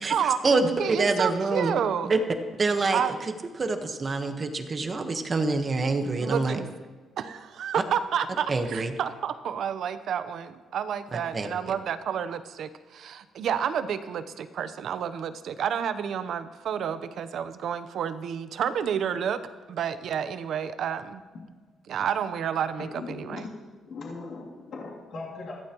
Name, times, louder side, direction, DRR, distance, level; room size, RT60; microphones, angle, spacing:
voice 1, 0.0-1.7 2.0-2.2 2.6-3.3 3.6-6.6 7.7-7.8 8.5-8.9 11.1-11.5, right 3 dB, 30° right, 6 dB, 1.2 m, -26 dB
voice 2, 0.8-2.1 2.9-3.2 6.2-6.7 7.2-19.4 19.7-21.2 21.9-23.5, right 8 dB, 60° right, 11 dB, 0.8 m, -30 dB
voice 3, 22.9-23.5 23.9-25.5, left 3 dB, 50° left, -4 dB, 2.9 m, -39 dB
21.5 x 15.0 x 3.0 m, 1.4 s
cardioid pair, 140°, 0 cm